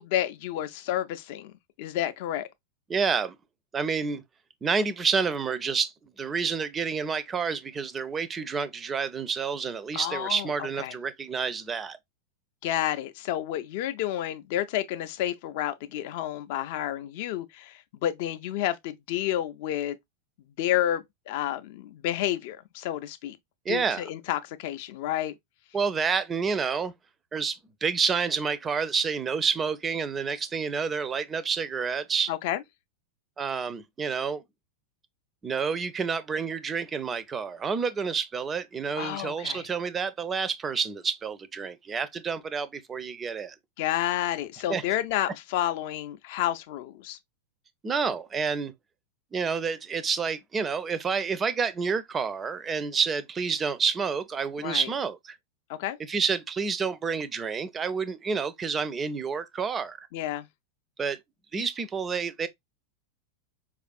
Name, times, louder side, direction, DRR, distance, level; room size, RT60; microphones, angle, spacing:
voice 1, 0.0-1.5 1.8-2.5 9.9-10.5 10.8-11.0 12.6-20.0 20.6-23.4 23.7-25.3 32.3-32.6 39.0-39.6 43.8-47.2 54.6-54.9 55.7-56.0 60.1-60.5, left 12 dB, 50° left, 0.4 m, -30 dB
voice 2, 2.9-3.4 3.7-4.2 4.6-12.0 23.7-24.0 25.7-26.9 27.3-32.3 33.4-34.4 35.4-43.6 44.7-44.8 47.8-48.7 49.3-55.4 56.1-60.1 61.0-61.2 61.5-62.5, right 5 dB, 20° right, 0.4 m, -29 dB
4.5 x 2.4 x 2.3 m
figure-of-eight pair, 90°, 0 cm